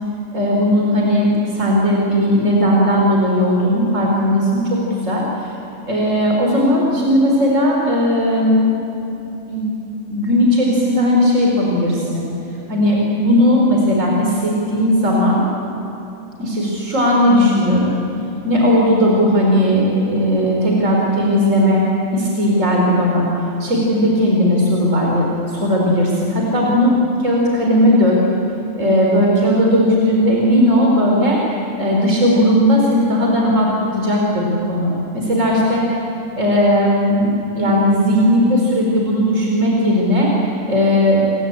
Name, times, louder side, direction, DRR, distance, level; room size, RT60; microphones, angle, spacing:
voice 1, 0.3-4.8 5.0-5.5 5.9-8.6 9.5-9.7 10.1-12.2 12.7-15.4 16.4-18.0 18.4-21.8 22.1-23.2 23.6-25.3 25.5-26.9 27.2-28.2 28.8-31.4 31.8-35.8 36.4-40.3 40.7-41.2, equal, 75° right, -2 dB, 4.6 m, -16 dB
29.0 x 23.0 x 8.8 m, 3.0 s
omnidirectional pair, 1.3 m